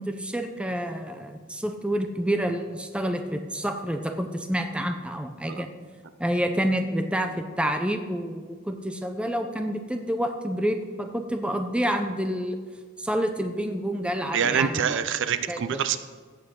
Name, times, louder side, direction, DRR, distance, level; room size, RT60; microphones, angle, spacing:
voice 1, 0.0-5.7 6.2-12.6 13.0-15.0 15.5-15.8, equal, 5° right, 6 dB, 0.6 m, -28 dB
voice 2, 14.3-16.0, right 8 dB, 55° right, 12 dB, 0.5 m, -25 dB
15.0 x 8.4 x 3.8 m, 1.5 s
head